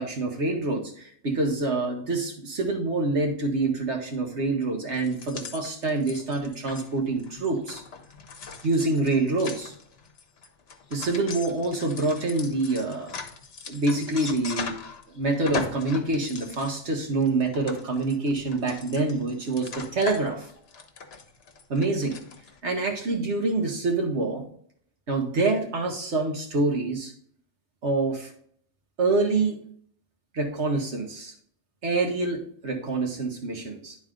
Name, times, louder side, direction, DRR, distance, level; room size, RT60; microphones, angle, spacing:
voice 1, 0.0-7.8 8.6-9.7 10.9-13.1 13.7-14.7 15.1-20.4 21.7-22.2 22.6-24.4 25.1-27.1 27.8-28.3 29.0-29.6 30.3-31.3 31.8-34.0, right 3 dB, 70° right, 2 dB, 1.6 m, -26 dB
sound 1, 5.0-15.0 15.3-22.6, left 5 dB, 65° left, 1.1 m, -39 dB
10.5 x 4.1 x 3.7 m, 0.62 s
omnidirectional pair, 1.2 m